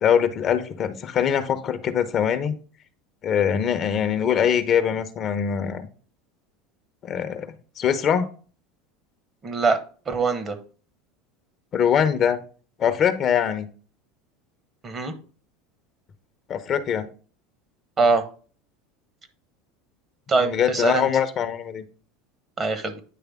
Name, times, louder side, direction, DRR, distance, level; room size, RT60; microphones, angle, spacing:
voice 1, 0.0-2.5 3.2-5.9 7.0-7.5 7.8-8.3 11.7-12.4 12.8-13.7 16.5-17.1 20.4-21.8, left 8 dB, 40° left, 10 dB, 0.7 m, -22 dB
voice 2, 9.4-10.6 14.8-15.1 18.0-18.2 20.3-21.1 22.6-23.0, right 4 dB, 30° right, 10 dB, 1.0 m, -23 dB
9.2 x 3.3 x 3.5 m, 0.40 s
hypercardioid pair, 85°, 0 cm